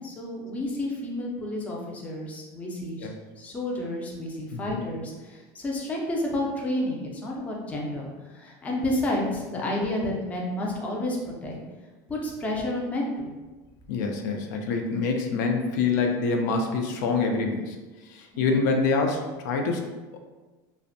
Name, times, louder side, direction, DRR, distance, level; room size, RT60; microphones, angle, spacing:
voice 1, 0.0-3.1 3.4-11.6 12.1-13.3 18.3-18.6, left 1 dB, 15° left, -2 dB, 0.4 m, -30 dB
voice 2, 4.5-4.8 13.9-17.8 18.1-19.9, left 4 dB, 90° left, 3 dB, 0.4 m, -26 dB
2.5 x 2.0 x 2.6 m, 1.2 s
supercardioid pair, 155°, 9 cm